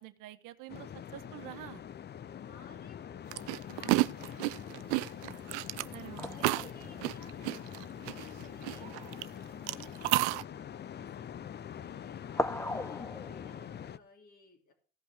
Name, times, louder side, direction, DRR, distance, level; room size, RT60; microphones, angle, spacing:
voice 1, 0.0-1.8 3.8-4.0 5.9-6.3, right 15 dB, 65° right, 10 dB, 1.3 m, -47 dB
sound 1, 0.7-14.0, left 9 dB, 30° left, 0.5 m, -44 dB
voice 2, 2.3-7.8 8.1-12.2 12.5-14.7, left 5 dB, 60° left, -1 dB, 3.2 m, -58 dB
sound 2, 3.0-4.1 6.2-8.5 9.3-9.5 9.7-10.5 11.4-11.8 12.1-14.0, left 2 dB, 10° left, 0.9 m, -40 dB
sound 3, 3.3-9.2 9.7-10.4, right 20 dB, 85° right, 0.6 m, -31 dB
16.0 x 5.5 x 8.1 m, 0.41 s
hypercardioid pair, 70°, 34 cm